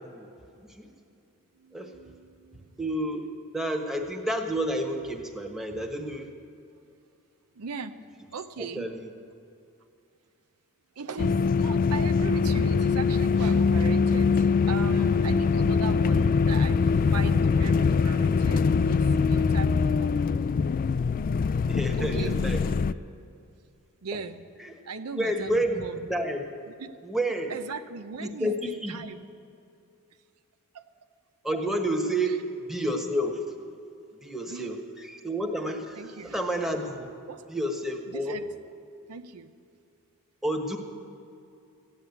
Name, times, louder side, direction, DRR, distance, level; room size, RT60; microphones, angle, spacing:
voice 1, 0.0-0.3 0.6-0.9 1.7-1.9 2.8-3.2 3.5-6.3 8.6-9.1 21.7-22.6 24.6-24.8 25.2-26.4 27.0-27.5 28.2-28.9 31.4-32.4 32.7-33.4 34.2-36.0 36.2-37.1 37.5-38.4 40.4-40.8, right 1 dB, ahead, 2 dB, 1.3 m, -30 dB
voice 2, 1.6-2.8 7.5-7.9 8.3-8.9 11.0-20.2 22.0-22.4 24.0-24.4 24.8-26.1 26.8-26.9 27.5-29.2 30.7-30.9 32.2-32.4 34.5-34.8 36.0-36.4 37.3-37.5 38.1-38.5 39.1-39.5, right 5 dB, 85° right, 8 dB, 0.7 m, -39 dB
sound 1, 11.2-22.9, left 5 dB, 40° left, 0.3 m, -23 dB
15.0 x 10.5 x 8.1 m, 2.6 s
head